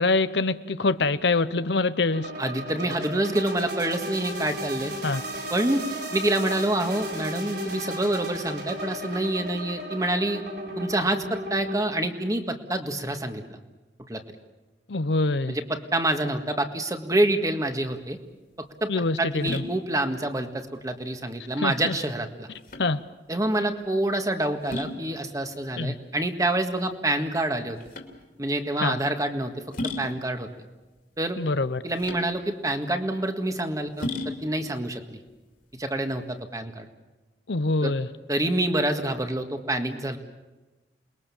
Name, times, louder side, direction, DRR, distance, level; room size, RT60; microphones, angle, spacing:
voice 1, 0.0-2.3 5.0-5.2 14.9-15.6 18.9-19.6 21.6-22.0 22.8-23.0 25.8-25.9 28.8-29.0 31.4-31.8 37.5-38.1, left 3 dB, 70° left, 13 dB, 0.8 m, -25 dB
sound 1, 2.1-11.8, right 1 dB, 60° right, 7.9 m, -35 dB
voice 2, 2.4-4.9 5.5-5.9 6.1-10.4 10.8-13.6 14.1-14.2 15.5-18.2 18.6-18.9 19.2-22.5 23.3-27.8 28.4-30.5 31.2-31.4 31.8-35.2 35.8-36.9 37.8-37.9 38.3-40.2, right 1 dB, 20° right, 6 dB, 1.8 m, -27 dB
sound 2, 17.9-36.4, left 2 dB, 50° left, 2.9 m, -39 dB
28.0 x 21.5 x 7.2 m, 1.1 s
head